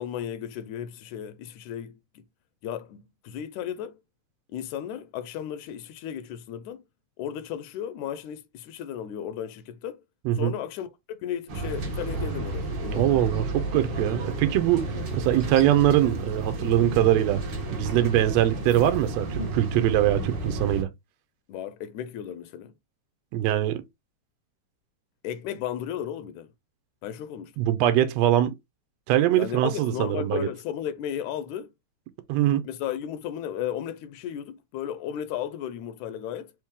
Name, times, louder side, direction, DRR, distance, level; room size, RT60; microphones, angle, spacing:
voice 1, 0.0-2.2 2.6-3.9 4.5-6.8 7.2-10.0 10.4-13.1 21.5-22.7 25.2-26.5 27.0-27.5 29.4-31.7 32.6-36.5, left 10 dB, 80° left, 2.0 m, -34 dB
sound 1, 11.5-20.8, right 2 dB, 50° right, 1.5 m, -32 dB
voice 2, 12.9-14.8 15.1-17.4 17.7-20.9 23.3-23.8 27.6-28.5 29.1-30.5 32.3-32.6, right 12 dB, 75° right, 1.8 m, -22 dB
4.7 x 3.1 x 3.5 m
omnidirectional pair, 3.4 m